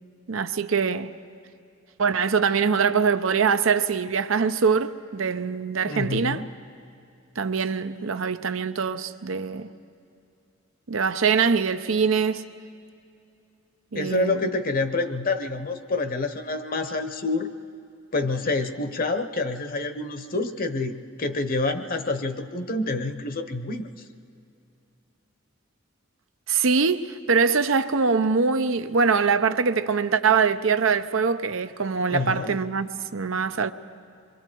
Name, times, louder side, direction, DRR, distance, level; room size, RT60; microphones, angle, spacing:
voice 1, 0.3-1.1 2.0-6.4 7.4-9.7 10.9-12.4 13.9-14.5 26.5-33.7, right 5 dB, 75° right, 0.7 m, -23 dB
voice 2, 5.9-6.5 13.9-17.5 18.1-20.9 21.2-23.9 32.1-32.6, left 3 dB, 45° left, 1.1 m, -27 dB
27.0 x 23.5 x 4.6 m
head